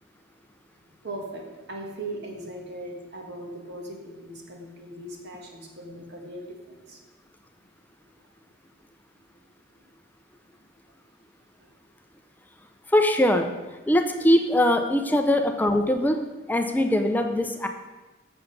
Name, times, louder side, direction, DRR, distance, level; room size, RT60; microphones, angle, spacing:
voice 1, 0.8-7.0 8.0-8.3 9.7-9.8 11.6-11.7 15.1-15.2, right 1 dB, 55° right, 1 dB, 1.5 m, -39 dB
voice 2, 12.9-13.5 13.9-16.2 16.5-17.7, left 1 dB, 10° left, 6 dB, 0.4 m, -21 dB
7.7 x 6.8 x 5.2 m, 1.2 s
head